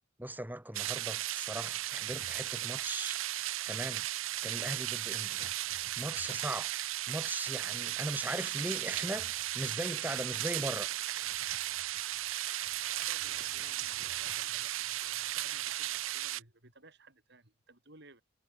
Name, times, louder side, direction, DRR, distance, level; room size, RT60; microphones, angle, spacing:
voice 1, 0.2-3.2 3.7-5.4 5.7-6.7 7.1-10.9, right 1 dB, 10° right, 1.7 m, -39 dB
sound 1, 0.7-16.4, right 14 dB, 80° right, 0.7 m, -36 dB
sound 2, 1.7-16.2, left 4 dB, 35° left, 1.5 m, -58 dB
voice 2, 13.0-18.2, right 2 dB, 55° right, 6.5 m, -58 dB
head